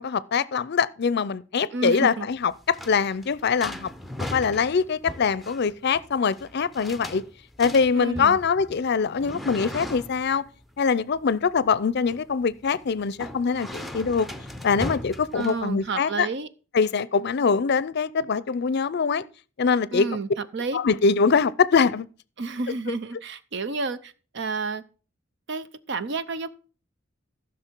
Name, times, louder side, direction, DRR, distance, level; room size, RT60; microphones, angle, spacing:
voice 1, 0.0-3.9 4.2-7.2 7.6-10.4 10.8-14.3 14.6-16.3 16.7-19.2 19.6-20.1 20.7-22.1 22.9-23.0, left 5 dB, 55° left, 0.5 m, -23 dB
voice 2, 1.7-2.3 7.9-8.4 15.3-16.5 19.9-20.8 22.4-24.8 25.5-26.5, right 3 dB, 65° right, 0.7 m, -30 dB
sound 1, 2.3-16.0, left 1 dB, ahead, 0.6 m, -39 dB
14.5 x 6.2 x 4.5 m
head